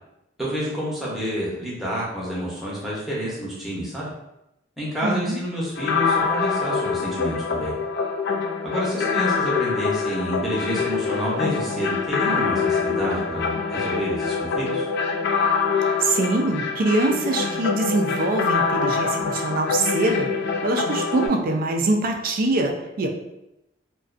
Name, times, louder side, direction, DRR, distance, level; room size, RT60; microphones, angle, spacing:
voice 1, 0.4-4.1 4.8-7.7 8.6-14.9, equal, ahead, -8 dB, 0.7 m, -28 dB
voice 2, 5.0-5.4 16.0-20.3 20.6-23.1, right 2 dB, 50° right, 3 dB, 0.3 m, -23 dB
sound 1, 5.8-21.3, left 5 dB, 60° left, 0.3 m, -25 dB
2.4 x 2.2 x 2.4 m, 0.88 s
head